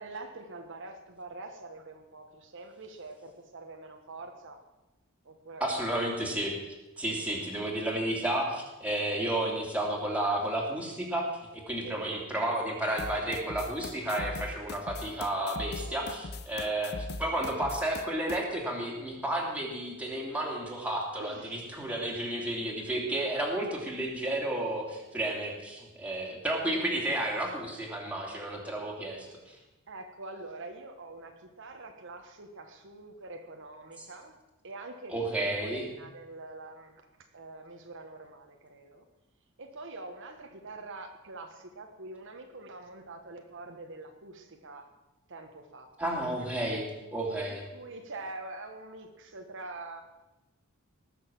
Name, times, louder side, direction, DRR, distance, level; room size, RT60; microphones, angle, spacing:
voice 1, 0.0-4.6 5.2-6.0 7.3-7.4 11.8-12.0 15.8-16.2 21.2-21.6 29.9-34.3 34.6-35.3 35.6-37.1 37.3-39.0 39.6-44.8 45.3-45.9 46.3-46.4 47.4-50.0, right 2 dB, 60° right, 4 dB, 1.3 m, -45 dB
voice 2, 5.6-6.5 7.0-11.3 11.5-29.6 35.1-35.9 46.0-46.8 47.1-47.7, right 1 dB, 5° right, -2 dB, 2.9 m, -32 dB
sound 1, 13.0-18.4, left 3 dB, 50° left, 0.8 m, -40 dB
19.0 x 6.7 x 7.6 m, 1.0 s
head